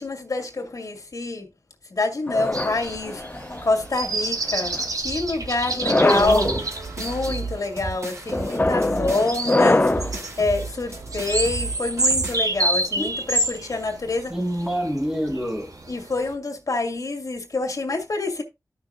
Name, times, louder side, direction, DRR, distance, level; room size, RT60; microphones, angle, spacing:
voice 1, 0.0-1.5 1.9-3.2 3.6-6.5 7.0-14.3 15.9-18.4, left 3 dB, 65° left, 2.2 m, -26 dB
sound 1, 2.3-3.7 4.5-4.9 5.7-6.4 7.0-7.4 8.3-10.2, left 2 dB, 25° left, 0.7 m, -23 dB
sound 2, 2.4-16.3, right 2 dB, 70° right, 1.5 m, -29 dB
voice 2, 5.9-6.6 13.0-13.1 14.3-15.7, equal, 10° right, 1.7 m, -25 dB
sound 3, 6.1-12.4, right 3 dB, 50° right, 3.1 m, -34 dB
13.5 x 5.9 x 2.5 m
wide cardioid pair, 85°, 6 cm